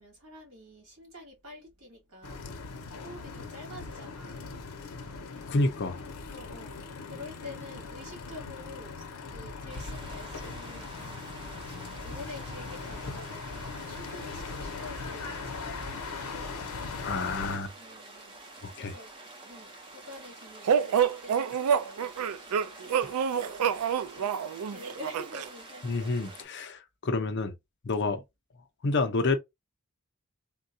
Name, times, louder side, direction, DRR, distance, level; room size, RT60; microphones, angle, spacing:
voice 1, 0.0-2.5 3.0-4.5 6.3-11.6 12.0-16.4 17.7-18.4 18.8-23.7 24.0-26.4, left 2 dB, 65° right, 2.2 m, -48 dB
sound 1, 2.2-17.6, left 4 dB, 85° left, 0.7 m, -40 dB
voice 2, 5.5-6.0 17.0-17.7 18.6-18.9 25.8-27.5 27.8-28.2 28.8-29.4, left 3 dB, 50° left, 0.6 m, -29 dB
sound 2, 9.7-26.4, right 2 dB, 20° right, 0.7 m, -48 dB
sound 3, 20.7-25.5, right 7 dB, 85° right, 0.3 m, -27 dB
3.6 x 2.3 x 2.6 m
head